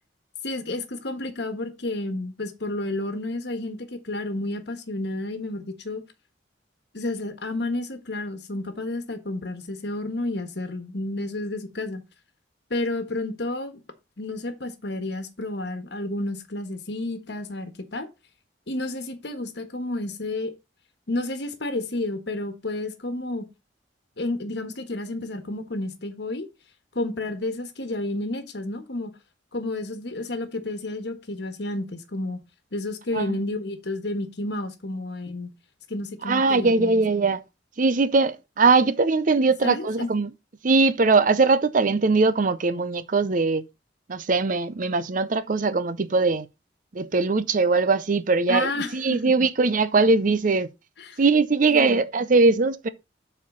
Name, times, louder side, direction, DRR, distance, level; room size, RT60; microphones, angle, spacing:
voice 1, 0.4-6.0 6.9-12.0 12.7-13.8 14.2-18.1 18.7-20.5 21.1-23.4 24.2-26.5 26.9-29.1 29.5-32.4 32.7-35.5 35.9-37.0 39.6-40.1 48.5-49.5 51.0-51.2 51.7-52.0, left 2 dB, 65° left, 1.4 m, -31 dB
voice 2, 36.2-37.4 37.8-40.3 40.6-43.6 44.1-46.5 46.9-50.7 51.2-52.9, right 3 dB, 45° right, 0.6 m, -21 dB
7.4 x 4.4 x 5.4 m
head